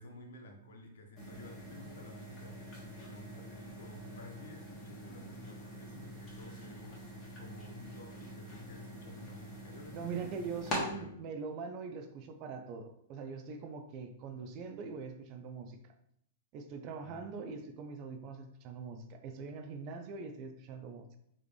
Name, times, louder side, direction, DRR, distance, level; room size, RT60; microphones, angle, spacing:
voice 1, 0.0-7.0 7.4-10.3 10.9-11.2 17.0-17.3, left 1 dB, 60° left, 3 dB, 0.9 m, -53 dB
sound 1, 1.2-10.8, equal, 20° left, 1.7 m, -45 dB
voice 2, 9.9-15.8 16.5-21.2, right 5 dB, 35° right, 6 dB, 0.5 m, -42 dB
4.8 x 3.0 x 3.3 m, 0.73 s
figure-of-eight pair, 100°, 0 cm